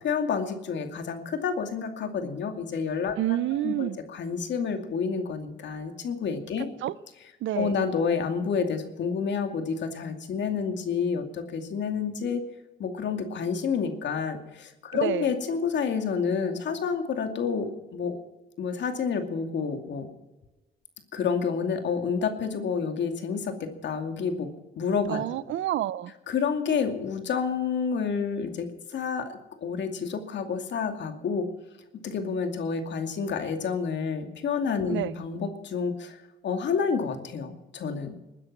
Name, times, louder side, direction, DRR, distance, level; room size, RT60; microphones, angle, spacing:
voice 1, 0.0-6.7 7.5-12.4 12.8-18.2 18.6-20.1 21.1-24.5 24.8-25.2 26.3-31.5 32.0-36.2 36.4-38.2, left 6 dB, 65° left, 6 dB, 2.5 m, -29 dB
voice 2, 3.2-4.0 6.8-6.9 7.4-7.8 15.0-15.3 25.1-26.1 34.9-35.1, right 13 dB, 75° right, 18 dB, 0.7 m, -28 dB
20.5 x 10.0 x 6.1 m, 1.1 s
cardioid pair, 90°, 20 cm